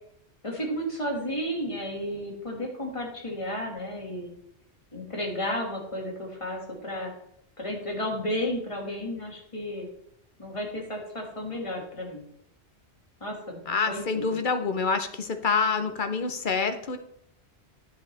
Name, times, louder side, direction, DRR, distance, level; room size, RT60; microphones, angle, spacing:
voice 1, 0.4-4.3 4.9-7.1 7.6-9.9 10.4-12.2 13.2-13.6 13.9-14.4, equal, 25° left, 0 dB, 2.0 m, -33 dB
voice 2, 13.7-17.0, left 5 dB, 50° left, 8 dB, 0.8 m, -27 dB
9.9 x 7.4 x 3.3 m, 0.72 s
omnidirectional pair, 1.2 m